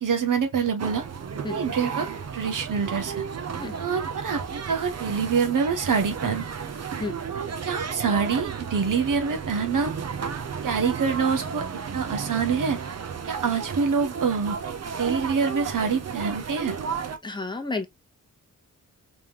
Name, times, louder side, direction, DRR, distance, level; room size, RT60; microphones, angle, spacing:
voice 1, 0.0-1.0 1.5-3.2 3.8-6.4 7.3-9.9 10.6-11.6 11.9-12.8 13.3-14.6 15.0-16.8, right 6 dB, 70° right, 1.0 m, -26 dB
sound 1, 0.8-17.2, right 6 dB, 50° right, 0.7 m, -33 dB
voice 2, 17.2-17.9, left 3 dB, 15° left, 0.8 m, -31 dB
3.6 x 3.3 x 2.9 m
wide cardioid pair, 120°, 33 cm